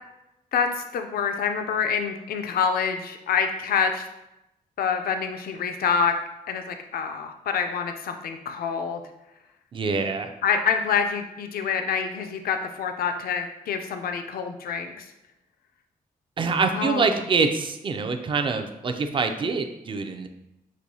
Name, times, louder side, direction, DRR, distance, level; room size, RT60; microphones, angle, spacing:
voice 1, 0.5-4.1 4.8-6.1 6.5-9.0 10.4-15.0 16.7-17.1, left 6 dB, 75° left, 6 dB, 0.4 m, -26 dB
voice 2, 9.7-10.3 16.4-20.3, right 4 dB, 35° right, 7 dB, 0.4 m, -25 dB
6.1 x 2.6 x 2.7 m, 0.91 s
wide cardioid pair, 160°, 16 cm